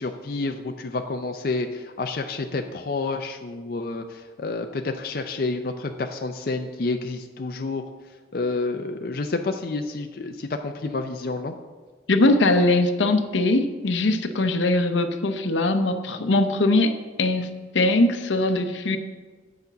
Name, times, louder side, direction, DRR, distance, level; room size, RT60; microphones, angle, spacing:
voice 1, 0.0-7.8 8.3-11.5, left 3 dB, 55° left, 5 dB, 0.5 m, -29 dB
voice 2, 12.1-16.9 17.2-17.5 17.7-19.0, left 2 dB, 85° left, 8 dB, 0.7 m, -21 dB
8.3 x 5.2 x 6.8 m, 1.4 s
head